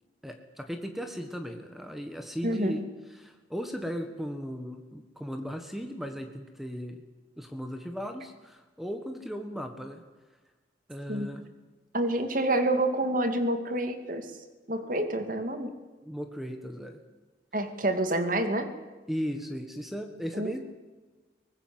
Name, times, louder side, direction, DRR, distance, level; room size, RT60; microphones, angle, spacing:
voice 1, 0.2-2.8 3.1-7.0 7.4-10.0 10.9-11.5 16.0-17.0 19.1-20.6, equal, ahead, 6 dB, 1.5 m, -37 dB
voice 2, 2.4-2.8 11.1-11.3 11.9-14.3 14.7-15.7 17.5-18.7 20.3-20.5, right 1 dB, 45° right, 8 dB, 2.4 m, -28 dB
23.5 x 19.5 x 7.7 m, 1.3 s
head